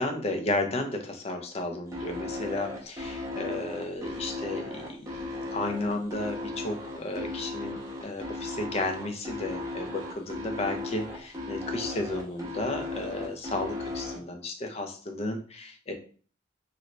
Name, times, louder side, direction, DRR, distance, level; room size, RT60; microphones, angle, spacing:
voice 1, 0.0-5.2 5.5-15.9, left 2 dB, 35° left, 5 dB, 0.5 m, -33 dB
sound 1, 1.9-14.2, left 2 dB, 15° right, 0.8 m, -36 dB
3.1 x 2.5 x 3.1 m, 0.42 s
head